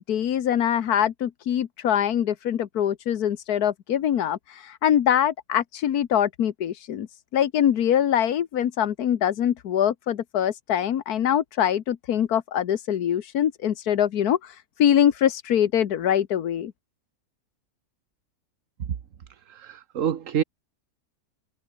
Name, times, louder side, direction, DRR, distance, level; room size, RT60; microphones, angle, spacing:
voice 1, 0.0-7.1 7.3-16.7, left 10 dB, 90° left, 1.6 m, -23 dB
voice 2, 19.5-20.4, right 8 dB, 60° right, 1.4 m, -27 dB
omnidirectional pair, 1.6 m